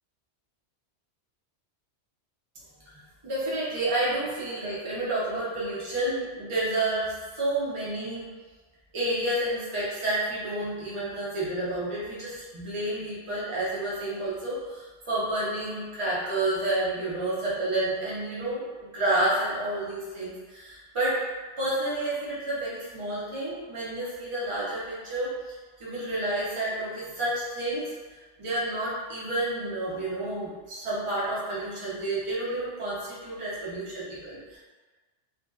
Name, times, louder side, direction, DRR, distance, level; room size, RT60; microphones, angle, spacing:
voice 1, 2.9-8.3 8.9-21.2 21.6-25.5 25.8-34.6, right 1 dB, 30° right, -9 dB, 0.7 m, -30 dB
2.6 x 2.3 x 2.3 m, 1.4 s
omnidirectional pair, 1.2 m